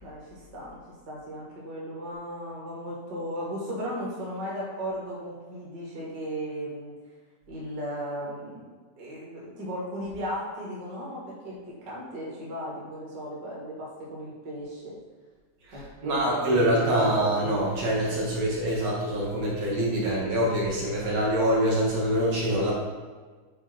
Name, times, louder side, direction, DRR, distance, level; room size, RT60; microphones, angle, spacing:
voice 1, 0.0-0.8 1.1-6.9 7.5-14.8 15.7-17.2, equal, 40° right, -5 dB, 2.0 m, -36 dB
voice 2, 15.7-22.7, right 1 dB, 60° right, -6 dB, 2.4 m, -25 dB
8.7 x 3.3 x 5.9 m, 1.4 s
omnidirectional pair, 3.4 m